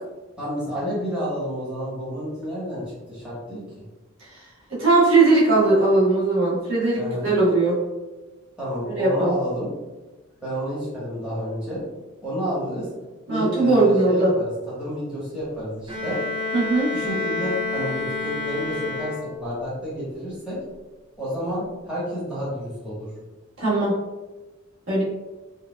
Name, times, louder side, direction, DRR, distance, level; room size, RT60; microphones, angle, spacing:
voice 1, 0.4-3.6 6.9-7.3 8.6-9.7 10.4-11.8 12.2-12.9 13.3-16.2 16.9-20.6 21.2-23.1, equal, 5° right, -10 dB, 1.3 m, -30 dB
voice 2, 4.7-7.8 9.0-9.3 13.3-14.3 16.5-16.9 23.6-23.9 24.9-25.0, right 2 dB, 60° right, -8 dB, 1.4 m, -19 dB
Bowed string instrument, 15.9-19.6, left 3 dB, 20° right, 0.5 m, -29 dB
4.7 x 2.4 x 2.3 m, 1.2 s
head